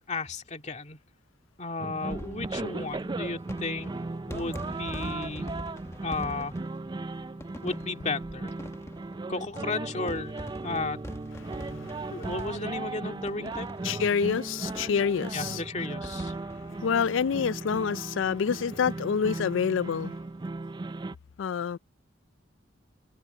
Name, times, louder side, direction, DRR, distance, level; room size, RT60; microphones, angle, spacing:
voice 1, 0.1-1.0 1.6-3.9 4.3-5.5 6.0-6.5 7.6-8.5 9.3-11.0 11.7-13.7 15.3-16.3, left 3 dB, 40° left, 2.1 m, -34 dB
sound 1, 1.8-21.1, right 2 dB, 25° right, 0.4 m, -37 dB
sound 2, 2.0-18.0 18.3-18.4 18.6-18.7 20.0-20.2, equal, 15° left, 1.1 m, -45 dB
voice 2, 11.6-12.1 13.8-15.6 16.8-20.1 21.4-21.8, left 6 dB, 85° left, 0.4 m, -27 dB
open air
head